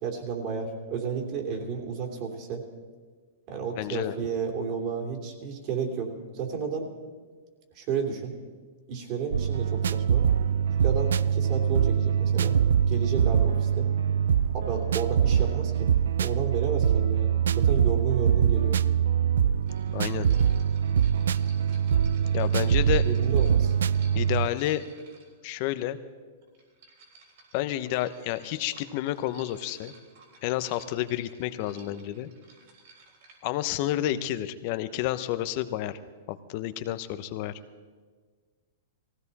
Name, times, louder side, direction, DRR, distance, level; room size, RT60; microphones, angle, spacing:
voice 1, 0.0-2.6 3.5-6.9 7.7-8.3 8.9-10.3 10.8-12.6 12.9-13.9 14.5-15.9 16.2-18.8 23.0-23.7, right 6 dB, 45° right, 2 dB, 3.0 m, -32 dB
voice 2, 3.8-4.1 19.9-20.4 22.3-23.0 24.1-24.8 25.4-26.0 27.5-29.9 30.4-32.3 33.4-36.0 36.3-37.5, left 14 dB, 50° left, 13 dB, 0.8 m, -30 dB
sound 1, 9.3-24.5, right 8 dB, 85° right, 0.4 m, -24 dB
sound 2, 19.6-25.5 26.4-33.4, right 3 dB, 60° right, 3.6 m, -55 dB
18.5 x 16.0 x 4.2 m, 1.5 s
hypercardioid pair, 130°, 0 cm